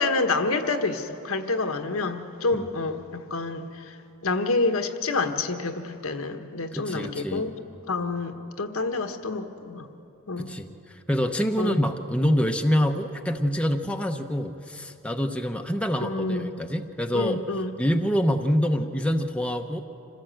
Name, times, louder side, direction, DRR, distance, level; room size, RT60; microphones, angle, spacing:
voice 1, 0.0-4.0 4.2-7.5 7.9-9.9 10.3-10.5 11.6-11.8 16.0-16.5 17.1-17.7, left 3 dB, 85° left, 6 dB, 1.3 m, -28 dB
voice 2, 6.7-7.5 10.4-10.7 11.1-17.4 17.8-19.8, equal, 5° left, 4 dB, 0.8 m, -26 dB
26.5 x 16.0 x 7.8 m, 2.7 s
head